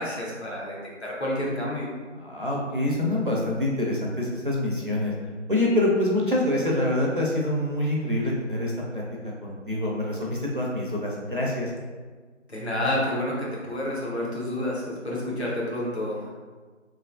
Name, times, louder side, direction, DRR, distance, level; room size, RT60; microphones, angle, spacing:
voice 1, 0.0-1.9 12.5-16.3, left 1 dB, 60° left, -5 dB, 1.0 m, -29 dB
voice 2, 2.2-5.1 5.5-11.7, left 1 dB, 45° right, -4 dB, 0.5 m, -26 dB
3.1 x 2.6 x 2.5 m, 1.4 s
figure-of-eight pair, 175°, 37 cm